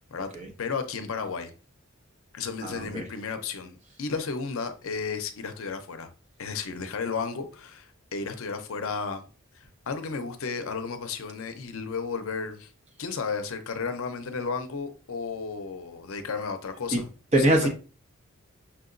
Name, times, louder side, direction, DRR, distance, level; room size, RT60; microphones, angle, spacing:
voice 1, 0.6-1.5 2.3-6.1 6.4-9.3 9.6-12.7 13.0-17.1 17.3-17.7, left 5 dB, 70° left, 0.6 m, -33 dB
voice 2, 2.6-3.0 16.9-17.0 17.3-17.7, right 1 dB, 30° right, 0.9 m, -23 dB
5.8 x 2.8 x 2.5 m
head